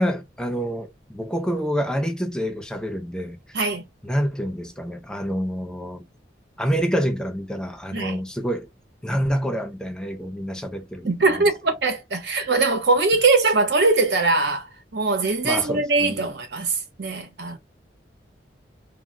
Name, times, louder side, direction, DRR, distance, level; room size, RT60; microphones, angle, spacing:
voice 1, 0.0-3.6 4.0-6.1 6.6-8.7 9.0-11.1 15.4-16.2, equal, 5° left, 0.6 m, -27 dB
voice 2, 11.0-17.6, right 3 dB, 65° right, 0.8 m, -21 dB
2.1 x 2.1 x 3.7 m
head